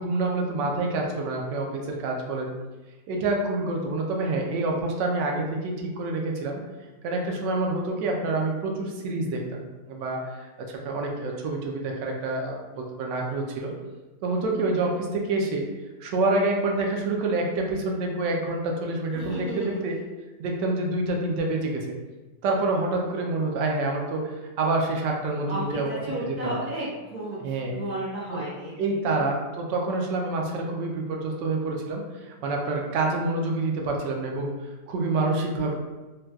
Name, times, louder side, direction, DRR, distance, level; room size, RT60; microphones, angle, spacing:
voice 1, 0.0-2.5 3.1-6.6 7.0-13.7 14.2-15.7 16.0-20.0 20.4-21.9 22.4-25.9 26.2-26.5 27.4-27.7 28.3-28.4 28.8-35.7, right 2 dB, 80° right, 0 dB, 1.2 m, -27 dB
voice 2, 19.1-19.8 25.5-28.7, right 1 dB, 15° left, -9 dB, 0.5 m, -33 dB
4.0 x 2.2 x 2.2 m, 1.2 s
omnidirectional pair, 1.9 m